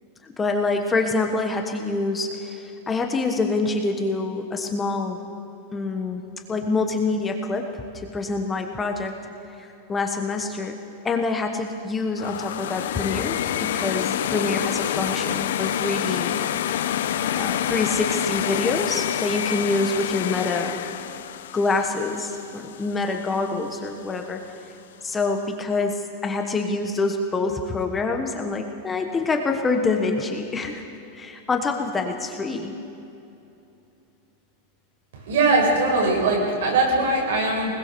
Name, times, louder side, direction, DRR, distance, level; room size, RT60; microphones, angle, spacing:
voice 1, 0.2-5.2 5.7-6.2 6.5-9.1 9.6-10.8 11.0-16.5 17.3-20.8 21.5-24.4 25.0-30.8 31.1-32.7, left 3 dB, 10° left, 4 dB, 1.2 m, -26 dB
sound 1, 12.2-23.2, left 10 dB, 75° left, 1.0 m, -27 dB
voice 2, 35.1-37.7, right 2 dB, 70° right, -1 dB, 7.6 m, -21 dB
24.5 x 20.5 x 6.9 m, 2.8 s
supercardioid pair, 170°, 0 cm